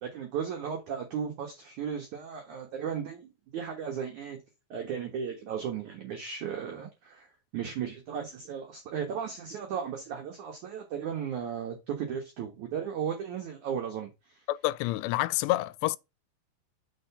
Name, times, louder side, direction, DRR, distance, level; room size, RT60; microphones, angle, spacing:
voice 1, 0.0-4.4 4.7-7.3 7.5-14.4, right 7 dB, 60° right, 2.1 m, -35 dB
voice 2, 14.5-16.0, left 17 dB, 90° left, 2.7 m, -28 dB
6.4 x 4.4 x 5.6 m
omnidirectional pair, 4.8 m